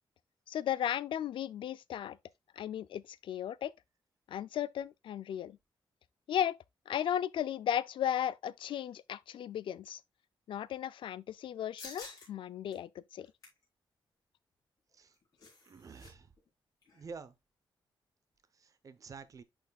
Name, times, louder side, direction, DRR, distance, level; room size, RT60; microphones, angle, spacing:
voice 1, 0.5-2.2 2.6-3.7 4.3-5.6 6.3-6.6 6.9-10.0 10.5-13.3, left 10 dB, 75° left, 0.4 m, -35 dB
sound 1, 11.8-12.3 12.7-12.8 13.2-13.6 14.9-16.1 16.4-16.5 16.8-17.1, left 3 dB, 45° left, 4.1 m, -50 dB
voice 2, 15.6-16.3 16.9-17.3 18.5-19.4, right 5 dB, 40° right, 0.7 m, -49 dB
11.0 x 4.3 x 2.3 m
wide cardioid pair, 165°, 9 cm